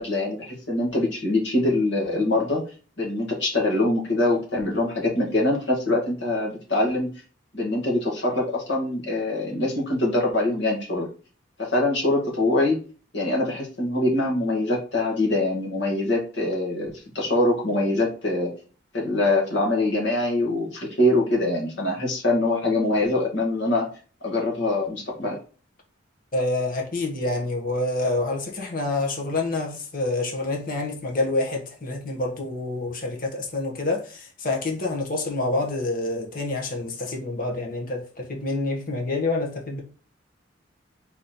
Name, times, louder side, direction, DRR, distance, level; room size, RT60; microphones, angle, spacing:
voice 1, 0.0-2.6 3.0-7.1 7.5-11.1 11.6-12.8 13.1-18.5 18.9-23.9 24.2-25.4, left 2 dB, 60° left, 1.6 m, -24 dB
voice 2, 26.3-39.8, left 2 dB, 45° left, 1.1 m, -27 dB
4.1 x 3.0 x 4.1 m
head